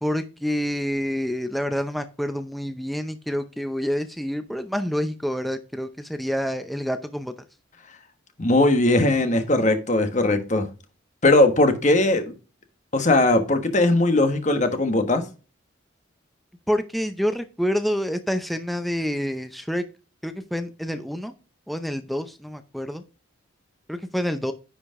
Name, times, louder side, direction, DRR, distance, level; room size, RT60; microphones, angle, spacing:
voice 1, 0.0-7.3 16.7-19.8 20.2-21.3 21.7-23.0 23.9-24.5, equal, ahead, 0.6 m, -27 dB
voice 2, 8.4-10.7 11.2-12.3 12.9-15.2, left 2 dB, 35° left, 1.3 m, -19 dB
10.0 x 5.1 x 3.6 m
head